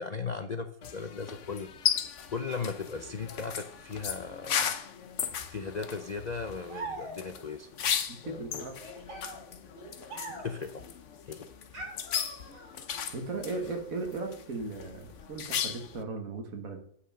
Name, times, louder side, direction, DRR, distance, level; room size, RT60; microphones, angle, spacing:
voice 1, 0.0-1.9 2.3-4.7 5.5-7.7 8.2-8.6 10.0-10.9 11.3-11.5, left 5 dB, 85° left, 8 dB, 0.3 m, -37 dB
sound 1, 0.8-16.0, left 8 dB, 55° left, 1.1 m, -36 dB
sound 2, 6.7-7.5 8.7-10.7 11.7-12.8, right 3 dB, 85° right, 3.5 m, -43 dB
voice 2, 8.1-8.7 13.1-16.8, right 3 dB, 60° right, 4 dB, 2.1 m, -37 dB
9.5 x 5.8 x 6.3 m, 0.64 s
omnidirectional pair, 1.7 m